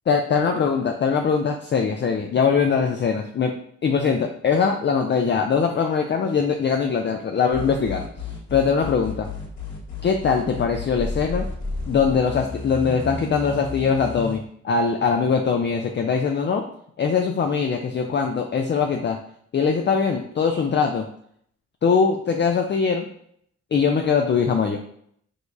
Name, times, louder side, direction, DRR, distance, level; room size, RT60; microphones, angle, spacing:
voice 1, 0.1-3.5 3.8-8.0 8.5-9.3 10.0-11.5 11.9-16.6 17.0-19.2 19.5-21.0 21.8-23.1 23.7-24.8, left 5 dB, 40° left, 3 dB, 0.4 m, -22 dB
sound 1, 7.5-14.4, left 4 dB, 75° left, 1.4 m, -32 dB
6.3 x 2.3 x 2.6 m, 0.67 s
cardioid pair, 80°, 29 cm